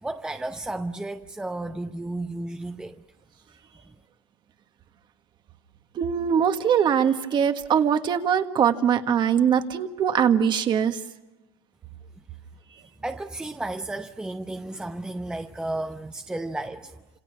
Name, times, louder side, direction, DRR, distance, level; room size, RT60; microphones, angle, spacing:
voice 1, 0.0-3.0 13.0-17.0, right 2 dB, 5° right, 0.8 m, -33 dB
voice 2, 5.9-11.0, right 8 dB, 35° right, 1.6 m, -22 dB
30.0 x 27.5 x 6.1 m
supercardioid pair, 130°, 14 cm